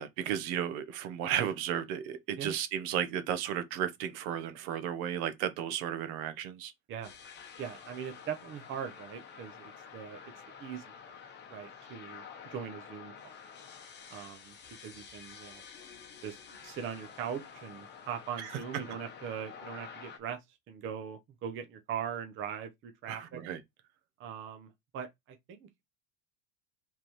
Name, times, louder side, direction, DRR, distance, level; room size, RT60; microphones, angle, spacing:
voice 1, 0.0-6.7 18.4-18.5 23.1-23.6, right 9 dB, 65° right, 1.1 m, -34 dB
sound 1, 7.0-20.2, left 6 dB, 25° left, 0.9 m, -49 dB
voice 2, 7.6-10.2 10.6-10.9 11.5-13.3 14.1-14.6 14.8-15.6 16.2-16.4 16.6-23.4 24.2-25.8, right 8 dB, 25° right, 0.7 m, -41 dB
4.8 x 3.6 x 3.0 m
supercardioid pair, 155°, 46 cm